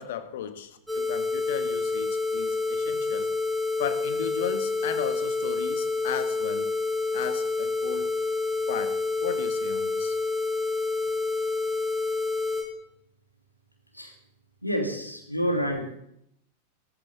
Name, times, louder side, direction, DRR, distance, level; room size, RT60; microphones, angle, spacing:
voice 1, 0.0-3.3 3.8-6.7 7.1-8.1 8.7-10.2, left 9 dB, 55° left, 1.6 m, -35 dB
sound 1, 0.9-12.6, left 3 dB, 5° right, 4.9 m, -28 dB
voice 2, 14.6-15.8, equal, 90° left, 2.9 m, -28 dB
21.0 x 14.5 x 3.6 m
figure-of-eight pair, 90°, 0 cm